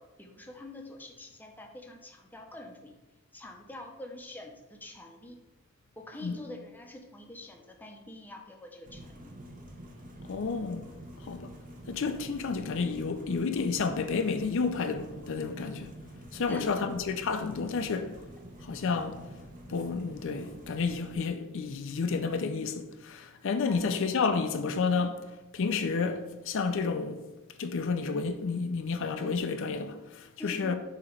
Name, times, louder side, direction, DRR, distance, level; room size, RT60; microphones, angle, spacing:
voice 1, 0.0-2.9 3.3-5.4 6.0-9.3 16.5-17.0 18.6-18.7 23.6-24.1 24.6-24.8 30.4-30.7, left 1 dB, 10° left, 0.6 m, -46 dB
sound 1, 8.8-21.2, right 1 dB, 40° right, 0.8 m, -47 dB
voice 2, 10.2-10.9 11.2-11.5 11.9-15.9 16.3-18.1 18.6-19.2 19.7-25.1 25.5-27.2 27.6-30.7, left 4 dB, 65° left, 0.5 m, -30 dB
6.8 x 3.0 x 5.1 m
head